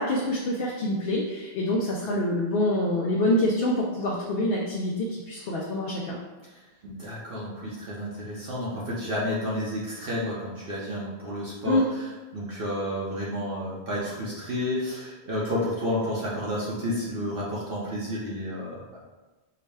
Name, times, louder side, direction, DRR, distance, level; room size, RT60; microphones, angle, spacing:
voice 1, 0.0-6.1 11.7-11.9, left 1 dB, 65° left, -3 dB, 0.7 m, -26 dB
voice 2, 6.8-19.0, left 1 dB, 60° right, -6 dB, 0.9 m, -31 dB
4.7 x 2.1 x 3.4 m, 1.2 s
omnidirectional pair, 1.1 m